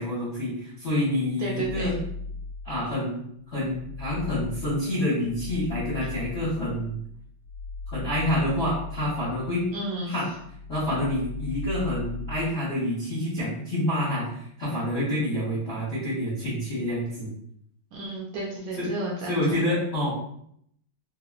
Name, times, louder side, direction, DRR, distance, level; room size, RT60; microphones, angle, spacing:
voice 1, 0.0-2.0 2.6-3.2 3.5-7.0 7.9-9.7 10.1-10.3 10.7-17.3 18.8-18.9 19.3-20.1, left 1 dB, 60° left, -9 dB, 0.7 m, -27 dB
voice 2, 1.4-1.9 9.7-10.1 17.9-19.4, right 2 dB, 75° right, -3 dB, 1.1 m, -32 dB
sound 1, 1.6-3.0 3.4-10.0 10.3-12.6, left 3 dB, 85° left, 1.5 m, -38 dB
3.5 x 2.0 x 2.3 m, 0.70 s
omnidirectional pair, 2.3 m